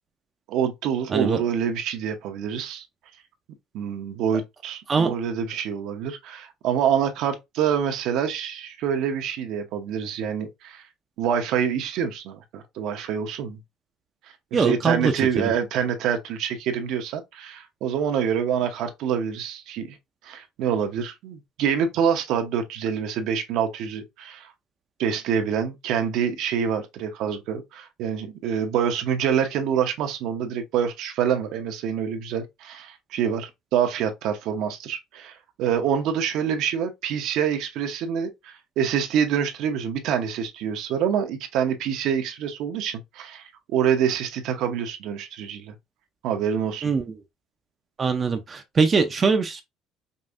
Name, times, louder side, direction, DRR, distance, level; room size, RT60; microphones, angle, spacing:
voice 1, 0.5-2.9 3.7-10.8 11.2-13.6 14.5-20.0 20.2-24.5 25.0-45.7 46.2-46.9, right 8 dB, 70° right, 0.8 m, -26 dB
voice 2, 1.1-1.4 4.9-5.1 14.5-15.5 46.8-47.2 48.0-49.6, right 5 dB, 25° right, 0.5 m, -22 dB
5.3 x 2.6 x 2.5 m
cardioid pair, 145°, 0 cm